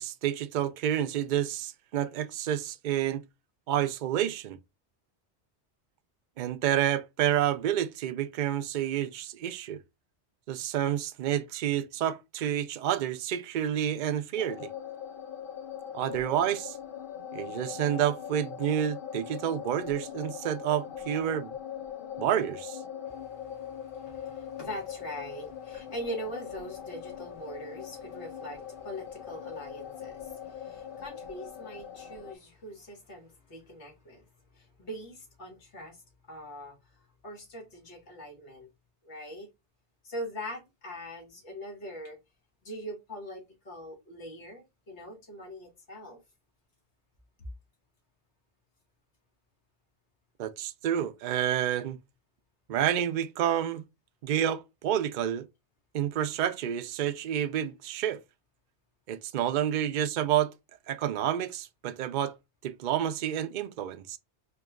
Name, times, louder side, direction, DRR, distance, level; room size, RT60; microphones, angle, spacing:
voice 1, 0.0-3.2 3.7-4.6 6.4-9.8 10.5-14.7 15.9-16.8 17.3-21.6 22.2-22.8 50.4-52.0 52.7-53.8 54.2-55.5 55.9-58.2 59.1-60.5 60.9-62.3 62.6-64.2, right 10 dB, 55° right, 0.6 m, -29 dB
sound 1, 14.4-32.4, left 8 dB, 60° left, 0.7 m, -41 dB
voice 2, 23.1-34.3 34.5-38.7 39.0-39.5 40.0-42.2 42.6-46.2, equal, 80° left, 1.9 m, -42 dB
4.6 x 2.9 x 2.4 m
omnidirectional pair, 1.1 m